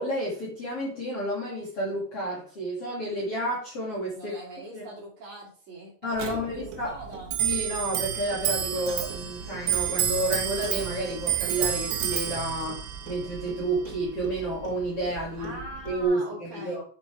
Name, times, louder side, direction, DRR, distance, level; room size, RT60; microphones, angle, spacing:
voice 1, 0.0-4.4 4.7-4.8 6.0-6.9 7.4-15.6 15.8-16.8, right 1 dB, 40° left, -5 dB, 2.8 m, -30 dB
voice 2, 4.1-5.9 6.2-7.3 15.4-16.8, right 2 dB, 45° right, -4 dB, 4.0 m, -42 dB
Clock, 6.2-16.0, right 9 dB, 75° right, 3.2 m, -31 dB
10.0 x 7.1 x 3.5 m, 0.43 s
omnidirectional pair, 5.1 m